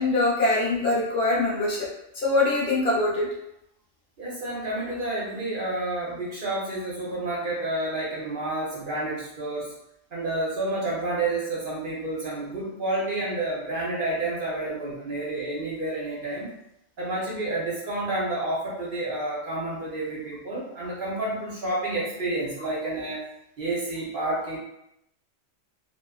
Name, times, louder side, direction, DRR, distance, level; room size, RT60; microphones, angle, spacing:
voice 1, 0.0-1.9 2.1-3.3, left 2 dB, 60° left, -6 dB, 0.9 m, -23 dB
voice 2, 4.2-9.7 10.1-16.5 17.0-23.2 23.6-24.6, right 2 dB, 55° right, -6 dB, 0.8 m, -30 dB
2.4 x 2.4 x 2.2 m, 0.82 s
omnidirectional pair, 1.2 m